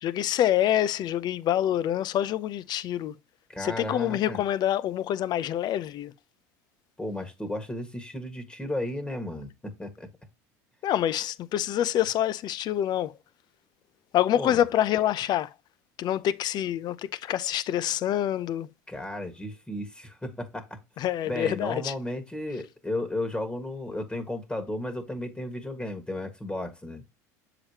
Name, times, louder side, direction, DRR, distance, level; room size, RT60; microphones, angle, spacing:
voice 1, 0.0-3.1 3.6-6.1 10.8-13.1 14.1-15.5 16.0-18.7 21.0-21.9, left 11 dB, 50° left, 0.7 m, -26 dB
voice 2, 3.5-4.4 7.0-9.5 9.8-10.1 14.3-14.6 18.9-20.8 21.2-27.0, left 1 dB, 10° left, 1.7 m, -34 dB
7.2 x 5.0 x 2.9 m
hypercardioid pair, 80°, 9 cm